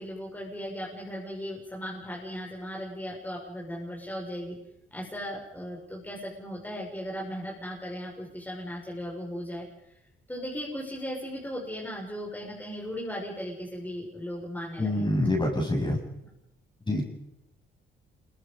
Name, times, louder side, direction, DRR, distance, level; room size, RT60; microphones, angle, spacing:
voice 1, 0.0-4.6 4.9-10.0 10.3-15.2, equal, 10° left, -2 dB, 6.2 m, -37 dB
voice 2, 14.8-16.0 16.9-17.1, left 1 dB, 25° left, 0 dB, 7.4 m, -26 dB
27.5 x 23.0 x 5.4 m, 0.86 s
cardioid pair, 90°, 20 cm